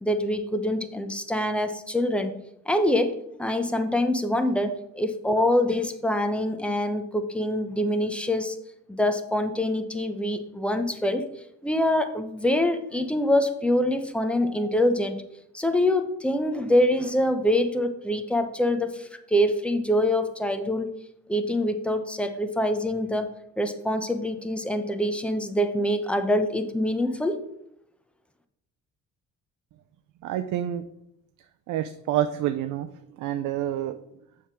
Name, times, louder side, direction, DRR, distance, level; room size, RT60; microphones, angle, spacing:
voice 1, 0.0-2.3 2.7-8.6 8.9-11.3 11.6-15.2 15.5-20.9 21.3-23.3 23.6-27.4, left 1 dB, 5° left, 7 dB, 0.8 m, -25 dB
voice 2, 30.2-30.8 31.7-32.9 33.2-34.0, right 11 dB, 85° right, 10 dB, 0.5 m, -28 dB
7.1 x 3.6 x 6.0 m, 0.78 s
cardioid pair, 90°, 30 cm